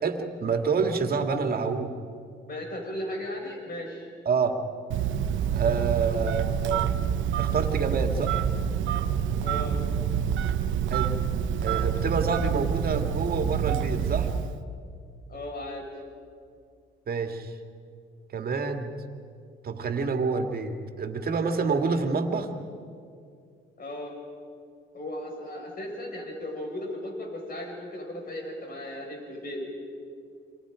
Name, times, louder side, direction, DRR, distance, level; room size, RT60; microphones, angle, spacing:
voice 1, 0.0-1.9 4.3-4.6 5.5-6.9 7.4-8.4 10.9-11.2 11.6-14.3 17.1-17.5 18.3-18.9 19.6-22.5, right 5 dB, 50° right, 5 dB, 2.3 m, -27 dB
voice 2, 2.4-4.1 9.4-9.8 15.3-15.9 23.8-24.1 24.9-29.6, left 1 dB, 45° left, 1 dB, 6.5 m, -36 dB
Telephone, 4.9-14.6, right 8 dB, 75° right, 1.0 m, -27 dB
28.5 x 26.0 x 5.1 m, 2.3 s
cardioid pair, 90°, 20 cm